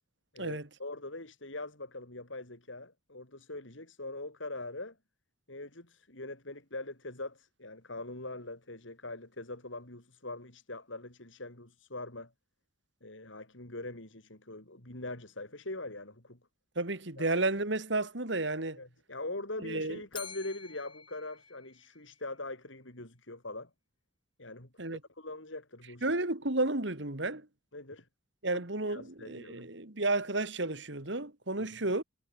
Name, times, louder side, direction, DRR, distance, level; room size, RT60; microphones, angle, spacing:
voice 1, 0.3-5.0 5.5-12.3 13.0-16.4 17.2-17.3 18.8-23.7 24.4-24.7 25.2-26.1 27.7-28.1 28.8-29.7 31.6-31.7, left 2 dB, 75° left, 5.0 m, -42 dB
voice 2, 16.8-18.8 19.6-20.0 24.8-25.0 26.0-27.5 28.4-32.0, right 2 dB, 65° right, 2.4 m, -32 dB
Bell, 20.1-22.3, left 7 dB, 25° left, 5.9 m, -49 dB
head